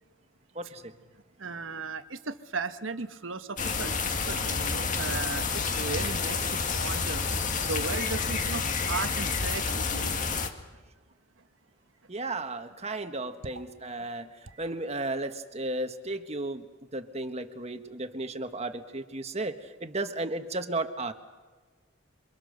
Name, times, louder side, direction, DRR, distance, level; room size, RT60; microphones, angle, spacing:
voice 1, 0.5-0.9 12.1-14.3 14.6-16.6 16.9-21.1, right 2 dB, 30° right, 8 dB, 1.4 m, -34 dB
voice 2, 1.4-7.3 7.7-10.3 14.0-14.1 14.5-14.6, right 4 dB, 70° right, 10 dB, 1.2 m, -36 dB
sound 1, 3.6-10.5, left 4 dB, 40° left, 1.8 m, -29 dB
28.0 x 24.5 x 6.7 m, 1.3 s
head